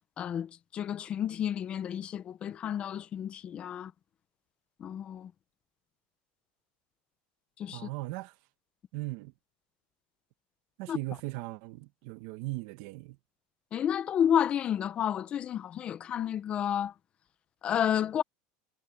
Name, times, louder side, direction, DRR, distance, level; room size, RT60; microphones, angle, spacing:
voice 1, 0.2-3.9 4.8-5.3 7.6-7.9 10.9-11.0 13.7-16.9 17.6-18.2, left 9 dB, 25° left, 0.9 m, -31 dB
voice 2, 7.7-8.3 8.9-9.3 10.8-13.2, right 19 dB, 60° right, 1.3 m, -38 dB
supercardioid pair, 165°, 4 cm